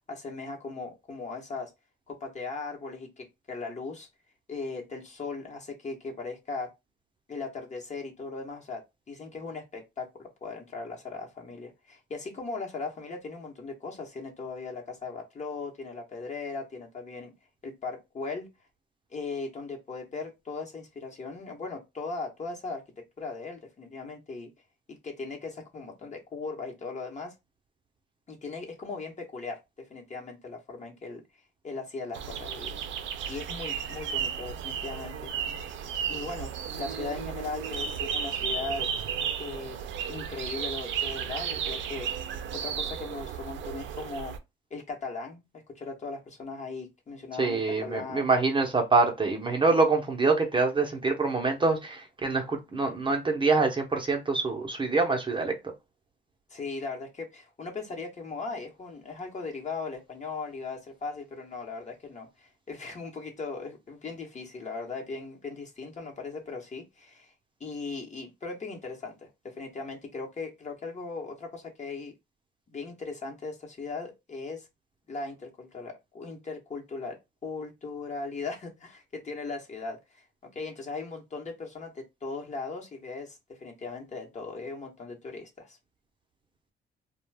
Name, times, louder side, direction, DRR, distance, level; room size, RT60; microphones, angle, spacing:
voice 1, 0.1-1.7 2.1-4.1 4.5-6.7 7.3-8.8 9.1-17.3 17.6-18.5 19.1-22.8 23.2-24.5 24.9-27.3 28.3-29.6 29.9-31.2 31.6-32.7 33.3-35.3 36.1-36.5 36.8-38.9 39.4-39.8 40.1-42.1 42.5-44.3 44.7-45.4 45.7-48.3 56.5-67.3 67.6-72.1 72.7-74.7 75.1-80.2 80.5-85.8, left 4 dB, 35° left, 1.0 m, -38 dB
sound 1, 32.1-44.4, right 7 dB, 75° right, 0.5 m, -34 dB
voice 2, 47.4-55.6, right 3 dB, 25° right, 0.7 m, -25 dB
2.4 x 2.2 x 3.3 m
cardioid pair, 90°, 20 cm